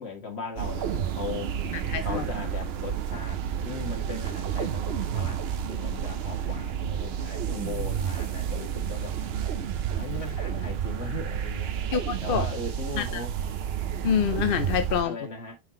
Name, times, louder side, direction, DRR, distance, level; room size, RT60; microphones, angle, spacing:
voice 1, 0.0-1.5 2.0-9.1 9.9-11.7 12.2-13.3 14.9-15.5, left 3 dB, 80° left, 2.1 m, -38 dB
sound 1, 0.6-15.0, right 8 dB, 70° right, 0.9 m, -30 dB
voice 2, 1.7-2.3 11.9-12.5 13.0-13.2 14.0-15.3, left 8 dB, 60° left, 0.7 m, -27 dB
5.7 x 5.7 x 3.0 m
omnidirectional pair, 1.1 m